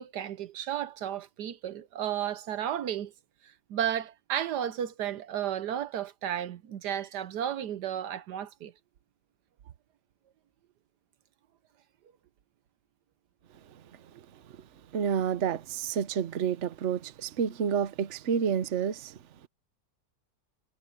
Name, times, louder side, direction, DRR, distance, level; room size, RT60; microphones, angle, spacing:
voice 1, 0.0-3.1 3.7-8.7, right 10 dB, 70° right, 1.3 m, -33 dB
voice 2, 14.9-19.1, right 7 dB, 50° right, 1.1 m, -29 dB
omnidirectional pair, 1.9 m